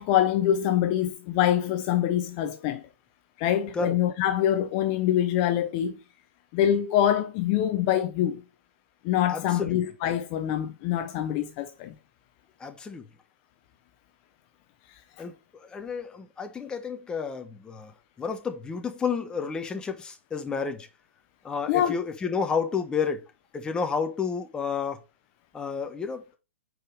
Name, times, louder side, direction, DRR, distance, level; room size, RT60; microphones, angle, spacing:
voice 1, 0.0-2.8 3.4-6.0 6.5-8.4 9.0-11.9 14.9-15.0 21.7-22.0, left 11 dB, 35° left, 0.6 m, -25 dB
voice 2, 9.3-9.8 12.6-13.1 15.2-15.3 15.6-17.9 18.2-20.9 21.4-23.3 23.5-25.0 25.5-26.4, left 5 dB, 10° left, 0.8 m, -31 dB
4.8 x 4.6 x 4.9 m
hypercardioid pair, 125°, 7 cm